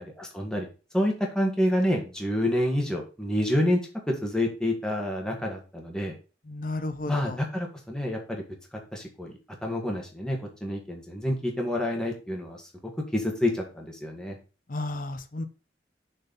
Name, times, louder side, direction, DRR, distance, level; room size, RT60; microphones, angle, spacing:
voice 1, 0.2-0.7 0.9-3.8 4.1-6.1 7.1-8.4 8.7-9.3 9.6-12.7 13.1-14.4, left 1 dB, 5° left, 0 dB, 1.8 m, -28 dB
voice 2, 6.5-7.4 14.7-15.4, left 2 dB, 45° left, 10 dB, 0.7 m, -33 dB
6.6 x 4.6 x 5.5 m, 0.33 s
head